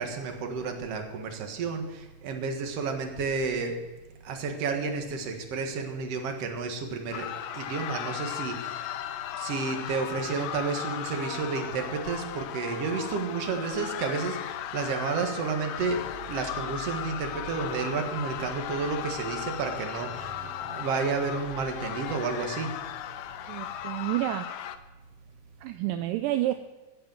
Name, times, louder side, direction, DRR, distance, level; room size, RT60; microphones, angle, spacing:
voice 1, 0.0-3.8 4.2-8.9 9.4-20.4 20.6-22.8, right 4 dB, 55° right, 4 dB, 2.1 m, -31 dB
sound 1, 7.1-24.8, left 11 dB, 90° left, 2.5 m, -37 dB
sound 2, 15.7-23.9, equal, 25° left, 2.5 m, -49 dB
voice 2, 23.5-24.5 25.6-26.5, right 15 dB, 80° right, 9 dB, 2.0 m, -29 dB
16.5 x 6.7 x 7.5 m, 1.1 s
omnidirectional pair, 4.2 m